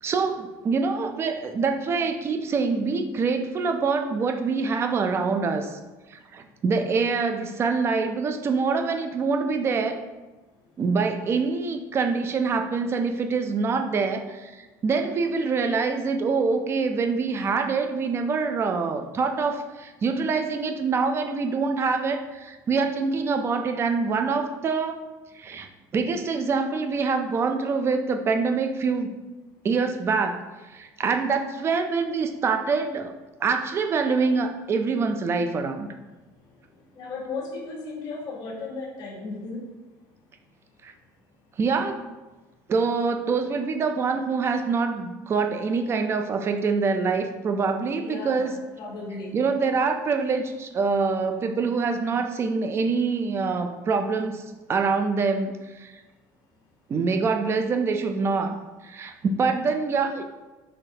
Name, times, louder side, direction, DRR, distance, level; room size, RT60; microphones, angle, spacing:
voice 1, 0.0-5.8 6.1-10.0 10.8-25.0 25.3-29.1 29.6-30.4 30.7-33.1 33.4-35.9 40.8-40.9 41.6-42.0 42.7-48.5 49.3-55.9 56.9-58.6 58.8-60.2, right 4 dB, 30° right, 6 dB, 0.3 m, -25 dB
voice 2, 37.0-39.6 47.9-49.5, left 3 dB, 50° left, -2 dB, 1.1 m, -35 dB
3.9 x 3.1 x 2.7 m, 1.2 s
cardioid pair, 135°, 9 cm